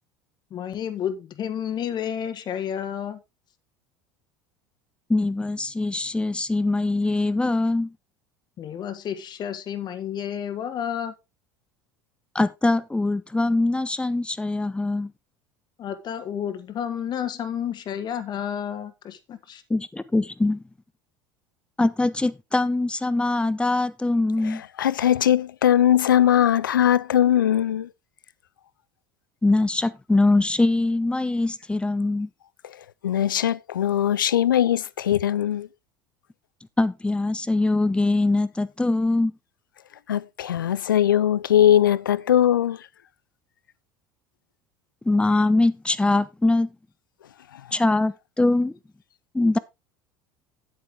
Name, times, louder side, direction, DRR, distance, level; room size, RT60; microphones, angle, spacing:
voice 1, 0.5-3.2 8.6-11.1 15.8-19.6, left 9 dB, 40° left, 1.5 m, -31 dB
voice 2, 5.1-7.9 12.3-15.1 19.7-20.6 21.8-24.6 29.4-32.3 36.8-39.3 45.0-46.7 47.7-48.7 49.3-49.6, left 2 dB, 10° left, 0.9 m, -22 dB
voice 3, 24.4-27.9 32.6-32.8 33.0-35.7 40.1-42.8 47.5-47.6, left 10 dB, 85° left, 0.5 m, -20 dB
9.7 x 8.7 x 3.5 m
hypercardioid pair, 75°, 11 cm